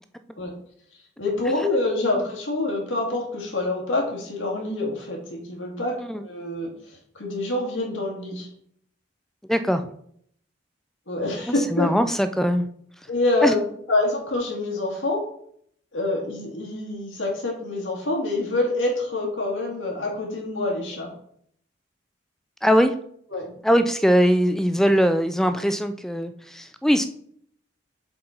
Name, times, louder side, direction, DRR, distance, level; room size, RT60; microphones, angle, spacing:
voice 1, 1.2-6.7 7.1-8.5 11.1-11.9 13.1-13.6 13.9-15.3 15.9-21.1 23.3-23.5, left 2 dB, 90° left, 0 dB, 2.1 m, -26 dB
voice 2, 9.5-9.9 11.7-12.7 13.4-13.5 22.6-23.0 23.6-27.0, equal, ahead, 9 dB, 0.4 m, -21 dB
7.5 x 4.0 x 4.4 m, 0.65 s
head